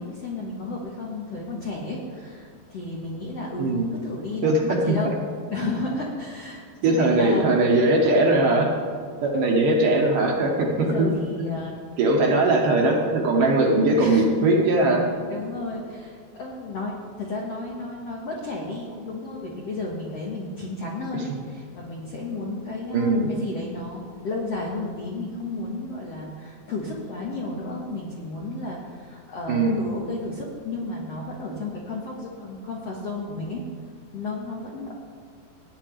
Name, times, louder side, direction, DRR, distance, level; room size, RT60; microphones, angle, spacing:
voice 1, 0.0-5.2 5.5-7.5 10.8-11.8 14.0-14.2 15.3-33.6 34.1-34.9, left 2 dB, 65° left, -3 dB, 1.6 m, -33 dB
voice 2, 4.4-4.8 5.0-5.1 6.8-8.7 9.2-11.1 11.4-11.5 12.0-15.0 22.9-23.3 29.5-29.8, right 2 dB, 65° right, 0 dB, 2.5 m, -20 dB
17.5 x 9.8 x 3.4 m, 2.1 s
omnidirectional pair, 4.6 m